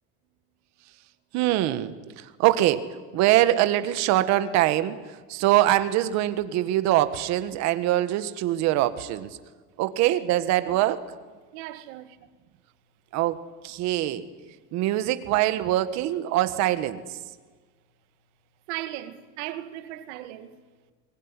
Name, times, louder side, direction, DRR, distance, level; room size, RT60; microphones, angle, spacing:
voice 1, 1.3-2.8 3.1-5.0 5.3-9.3 9.8-11.0 13.1-13.4 13.6-14.2 14.7-17.0, right 14 dB, 45° right, 1.6 m, -23 dB
voice 2, 10.0-10.3 10.6-10.8 11.5-12.2 18.7-20.6, right 14 dB, 65° right, 2.0 m, -37 dB
24.0 x 21.5 x 9.9 m
cardioid pair, 175°, 37 cm